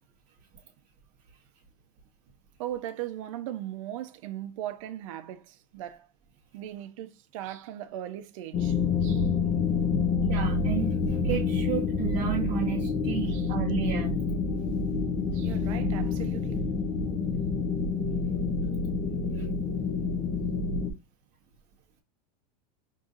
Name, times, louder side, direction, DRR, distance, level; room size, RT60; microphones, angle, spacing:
voice 1, 2.6-6.1 6.5-9.3 13.3-13.5 15.3-16.7, right 12 dB, 50° right, 0.6 m, -38 dB
sound 1, 8.5-20.9, left 4 dB, 20° left, 0.4 m, -28 dB
voice 2, 10.3-14.1 15.5-15.6 19.3-19.4, right 9 dB, 30° right, 0.9 m, -32 dB
5.3 x 2.7 x 2.4 m
supercardioid pair, 175°, 21 cm